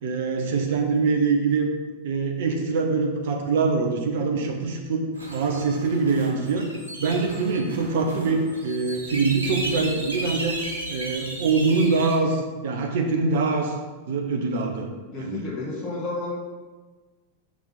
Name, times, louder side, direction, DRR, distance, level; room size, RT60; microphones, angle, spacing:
voice 1, 0.0-1.7 2.0-6.7 7.0-10.6 10.9-13.8 14.1-14.9 15.2-15.5, right 4 dB, 55° right, 2 dB, 1.2 m, -24 dB
sound 1, 5.1-12.1, right 1 dB, 75° right, 2.0 m, -35 dB
voice 2, 15.1-16.3, left 3 dB, 25° left, -5 dB, 1.7 m, -31 dB
6.6 x 5.9 x 4.3 m, 1.3 s
figure-of-eight pair, 90°, 0 cm